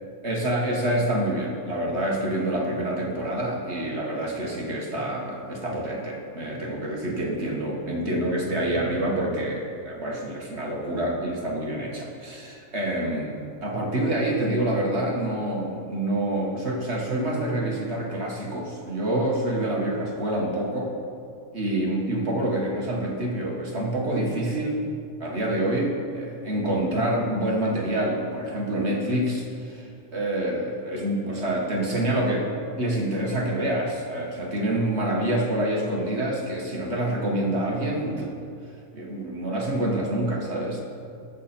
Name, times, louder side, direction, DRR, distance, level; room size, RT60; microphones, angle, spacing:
voice 1, 0.2-20.9 21.5-24.9 25.2-32.5 32.8-38.4 38.9-40.8, right 1 dB, 50° right, -1 dB, 2.0 m, -27 dB
21.0 x 7.4 x 4.4 m, 2.4 s
omnidirectional pair, 1.4 m